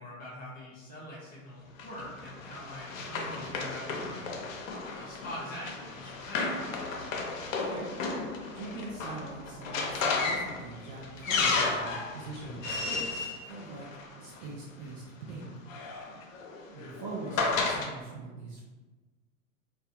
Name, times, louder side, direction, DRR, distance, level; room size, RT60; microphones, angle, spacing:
voice 1, 0.0-4.3 5.0-6.5 16.1-16.2, left 1 dB, 20° left, -5 dB, 0.6 m, -44 dB
Run, 1.8-14.4 15.4-17.9, left 4 dB, 65° left, 0.6 m, -33 dB
voice 2, 7.6-7.9 8.5-13.9 14.1-15.6 16.7-18.6, right 3 dB, 35° right, -3 dB, 0.4 m, -42 dB
2.3 x 2.1 x 2.7 m, 1.3 s
hypercardioid pair, 115°, 42 cm